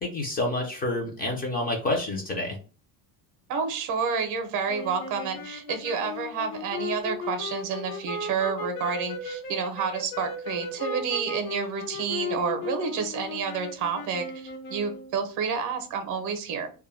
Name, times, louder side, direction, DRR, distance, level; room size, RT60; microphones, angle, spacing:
voice 1, 0.0-2.6, left 2 dB, 25° left, -1 dB, 0.4 m, -28 dB
voice 2, 3.5-16.7, right 6 dB, 50° right, 7 dB, 0.6 m, -29 dB
sound 1, 4.7-15.2, left 3 dB, 70° left, 0.7 m, -36 dB
2.2 x 2.1 x 3.1 m, 0.37 s
cardioid pair, 160°, 39 cm